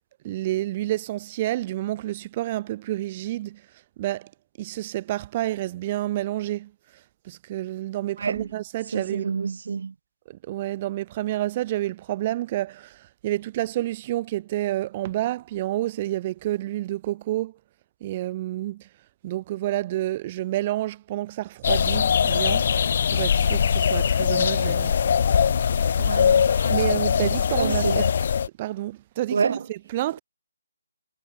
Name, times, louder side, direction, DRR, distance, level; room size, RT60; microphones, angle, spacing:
voice 1, 0.2-4.3 4.6-9.4 10.3-17.6 18.0-18.9 19.2-22.7 23.1-25.0 25.8-26.2 26.7-28.1 28.6-30.2, right 15 dB, 30° right, 3.0 m, -29 dB
voice 2, 8.9-9.9 26.0-26.7 27.2-27.3 27.6-28.1 29.3-29.6, right 5 dB, 55° right, 1.5 m, -28 dB
sound 1, 21.6-28.5, left 7 dB, 45° left, 0.4 m, -21 dB
figure-of-eight pair, 150°, 0 cm